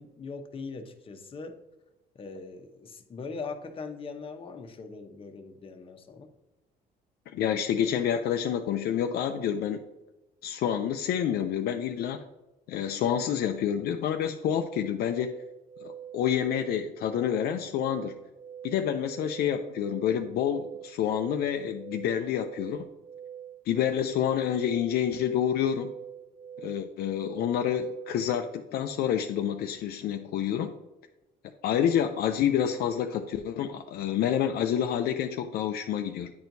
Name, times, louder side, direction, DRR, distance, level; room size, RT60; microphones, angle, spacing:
voice 1, 0.0-1.6 2.1-6.3, left 4 dB, 35° left, 5 dB, 0.8 m, -41 dB
voice 2, 7.3-9.8 10.4-12.2 12.7-15.3 15.8-18.2 18.6-22.9 23.7-25.9 26.6-30.7 31.6-36.3, left 9 dB, 70° left, 6 dB, 0.4 m, -28 dB
sound 1, 14.5-28.3, right 9 dB, 80° right, 0.5 m, -45 dB
9.4 x 4.4 x 2.6 m, 1.0 s
cardioid pair, 110°, 17 cm